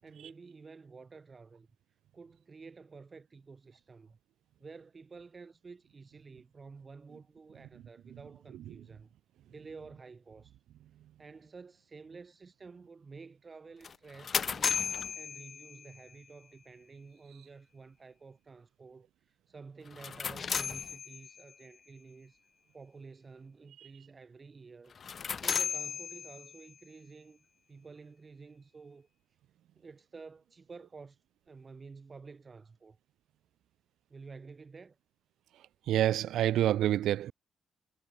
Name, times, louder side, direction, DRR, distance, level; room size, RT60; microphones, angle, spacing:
voice 1, 0.0-1.7 2.1-4.2 4.6-9.1 9.5-10.6 11.2-14.8 15.1-22.4 22.7-29.1 29.7-31.2 31.5-33.0 34.1-35.0, right 4 dB, 30° right, 7.5 m, -51 dB
sound 1, 13.8-16.1 19.9-21.5 24.9-26.7, left 6 dB, 45° left, 0.8 m, -35 dB
voice 2, 35.9-37.3, right 12 dB, 80° right, 0.4 m, -27 dB
cardioid pair, 90°, 0 cm